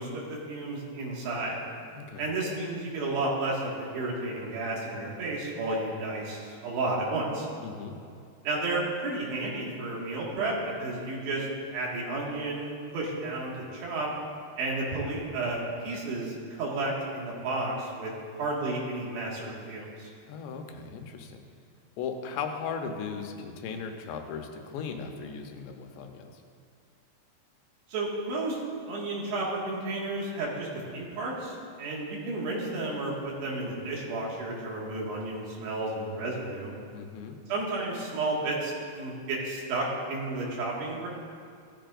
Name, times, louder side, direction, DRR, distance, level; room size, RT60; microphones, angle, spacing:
voice 1, 0.0-1.6 2.2-7.5 8.4-11.5 11.7-14.1 14.6-20.1 27.9-28.6 28.9-30.7 30.9-36.8 37.5-41.1, right 2 dB, 75° right, -4 dB, 4.1 m, -32 dB
voice 2, 2.0-2.3 7.6-8.0 20.3-21.4 22.0-26.4 36.9-37.4, left 6 dB, 85° left, 4 dB, 3.2 m, -37 dB
16.0 x 14.0 x 2.6 m, 2.4 s
omnidirectional pair, 4.9 m